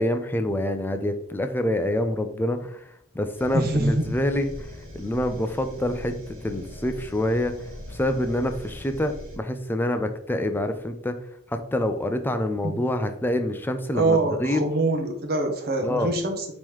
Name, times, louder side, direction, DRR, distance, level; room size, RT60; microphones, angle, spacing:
voice 1, 0.0-2.8 3.1-7.5 7.9-11.1 11.7-14.7 15.8-16.1, left 1 dB, 10° left, 7 dB, 0.3 m, -26 dB
sound 1, 3.4-9.4, left 1 dB, 65° right, 1.6 m, -41 dB
voice 2, 3.5-4.1 12.6-12.8 13.9-16.5, right 2 dB, 50° right, 4 dB, 0.7 m, -24 dB
5.4 x 3.0 x 3.1 m, 0.72 s
head